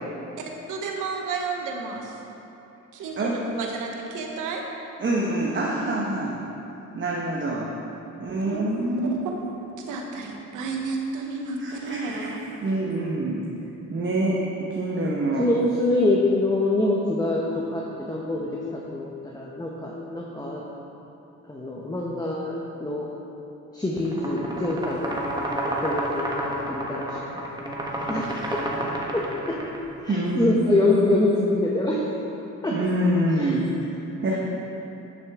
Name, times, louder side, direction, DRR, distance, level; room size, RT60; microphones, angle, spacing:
voice 1, 0.7-2.0 2.9-3.3 3.6-4.6 8.4-8.6 9.1-9.2 9.8-12.4, right 4 dB, 85° right, 1 dB, 1.2 m, -31 dB
voice 2, 5.0-6.3 6.9-7.7 8.2-9.2 11.6-12.3 12.6-13.4 13.9-15.4 30.1-31.0 32.7-33.7 34.2-34.4, right 1 dB, 40° right, -5 dB, 1.3 m, -26 dB
voice 3, 15.4-20.6 21.5-23.1 23.7-25.2 25.6-27.5 28.1-28.2 29.1-29.6 30.0-31.9 32.6-32.7 33.4-33.5 34.3-34.4, left 2 dB, 15° left, -3 dB, 1.0 m, -25 dB
sound 1, 24.0-29.8, right 1 dB, 15° right, 1.4 m, -30 dB
11.5 x 6.5 x 3.7 m, 2.9 s
cardioid pair, 90°, 30 cm